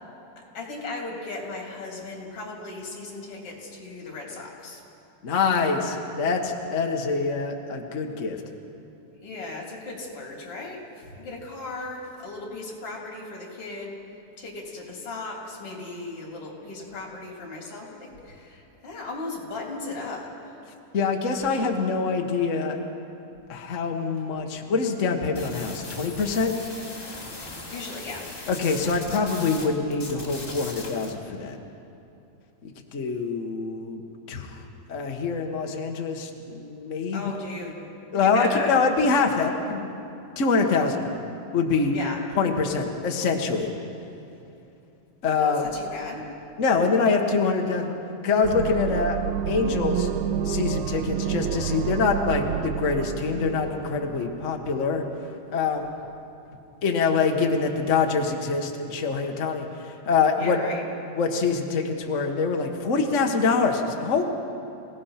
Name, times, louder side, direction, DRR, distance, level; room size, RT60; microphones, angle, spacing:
voice 1, 0.4-4.8 9.2-14.0 14.4-20.6 27.7-28.3 37.1-37.8 38.3-38.8 41.9-42.2 45.4-46.3 60.4-60.8, left 3 dB, 45° left, -1 dB, 4.1 m, -36 dB
voice 2, 5.2-8.4 20.9-22.8 23.5-26.5 28.5-31.6 32.6-34.0 34.3-34.6 34.9-37.3 38.1-39.9 40.4-41.1 41.5-42.0 42.4-43.7 45.2-45.6 46.6-47.9 48.2-50.1 50.4-55.0 55.5-55.9 56.8-60.6 61.1-64.2, left 4 dB, 75° left, 3 dB, 0.7 m, -25 dB
sound 1, 25.3-29.7 29.9-31.1, left 2 dB, 15° left, 3.2 m, -39 dB
sound 2, 48.4-55.1, right 9 dB, 75° right, 1.9 m, -29 dB
26.0 x 17.5 x 5.9 m, 2.8 s
omnidirectional pair, 3.6 m